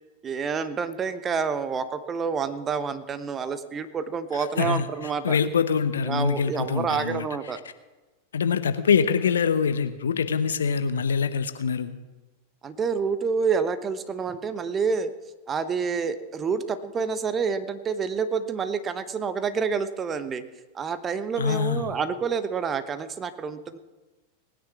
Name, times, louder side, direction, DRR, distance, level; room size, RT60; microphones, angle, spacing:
voice 1, 0.2-5.4 6.0-7.6 12.6-15.1 15.5-20.4 20.7-23.8, right 5 dB, 25° right, 11 dB, 1.1 m, -28 dB
voice 2, 4.6-4.9 5.2-7.3 8.3-11.9 21.4-21.9, left 6 dB, 65° left, 11 dB, 0.9 m, -24 dB
19.0 x 10.0 x 6.1 m, 1.2 s
figure-of-eight pair, 90°, 0 cm